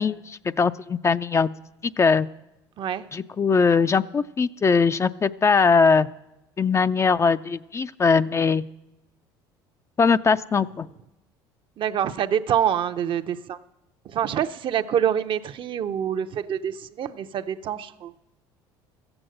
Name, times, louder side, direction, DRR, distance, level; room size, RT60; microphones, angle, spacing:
voice 1, 0.0-1.5 1.8-2.3 3.1-6.1 6.6-8.6 10.0-10.9, left 5 dB, 25° left, 13 dB, 0.4 m, -21 dB
voice 2, 11.8-13.6 14.1-18.1, right 9 dB, 50° right, 10 dB, 0.6 m, -26 dB
14.5 x 8.0 x 7.7 m, 0.93 s
supercardioid pair, 80°, 11 cm